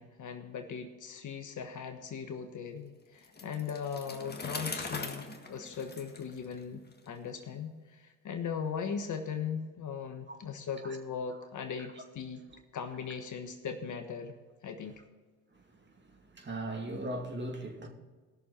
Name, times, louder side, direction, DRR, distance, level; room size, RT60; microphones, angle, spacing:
voice 1, 0.0-6.8 7.1-12.4 12.7-14.3 14.6-14.9, left 6 dB, 45° left, 1.3 m, -39 dB
Bicycle, 3.2-7.1, left 3 dB, 20° left, 1.6 m, -41 dB
voice 2, 16.3-17.9, right 1 dB, 25° right, 2.4 m, -38 dB
18.0 x 6.6 x 4.4 m
hypercardioid pair, 65°, 44 cm